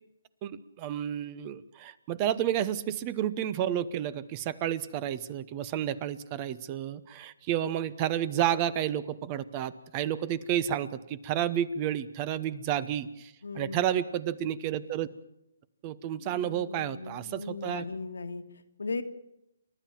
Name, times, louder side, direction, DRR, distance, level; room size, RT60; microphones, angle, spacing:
voice 1, 0.4-15.1 15.8-17.8, right 10 dB, 30° right, 18 dB, 0.9 m, -31 dB
voice 2, 13.4-13.9 16.2-19.0, left 3 dB, 80° left, 7 dB, 1.8 m, -38 dB
29.5 x 12.0 x 7.4 m, 0.85 s
hypercardioid pair, 145°, 0 cm